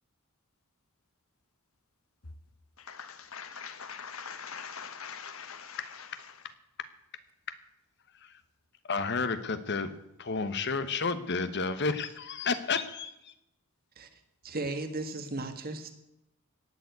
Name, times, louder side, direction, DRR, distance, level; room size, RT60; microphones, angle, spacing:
voice 1, 2.8-6.0, left 6 dB, 70° left, 1.3 m, -42 dB
voice 2, 8.8-9.9 10.2-13.3, left 4 dB, 55° left, 1.1 m, -31 dB
voice 3, 14.4-15.9, right 2 dB, 45° right, 1.8 m, -35 dB
17.5 x 7.1 x 9.5 m
head